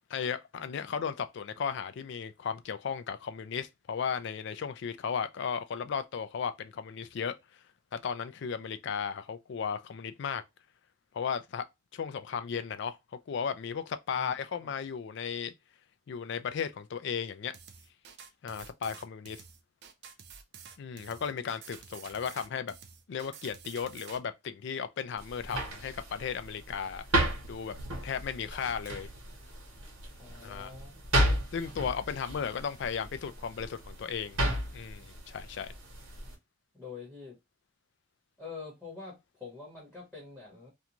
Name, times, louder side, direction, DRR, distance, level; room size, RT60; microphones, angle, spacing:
voice 1, 0.1-7.4 7.9-10.4 11.1-11.6 11.9-13.0 13.3-15.5 16.1-17.6 18.4-19.4 20.8-22.7 23.1-27.1 27.4-27.7 28.0-29.1 30.4-30.7 31.5-34.4 34.7-35.7, left 7 dB, 55° left, 0.3 m, -35 dB
sound 1, 17.5-24.2, right 7 dB, 50° right, 0.4 m, -50 dB
sound 2, 25.2-36.3, right 1 dB, 80° right, 1.1 m, -34 dB
voice 2, 30.1-31.0 36.7-37.4 38.4-40.7, left 4 dB, ahead, 1.0 m, -45 dB
2.5 x 2.2 x 2.9 m
head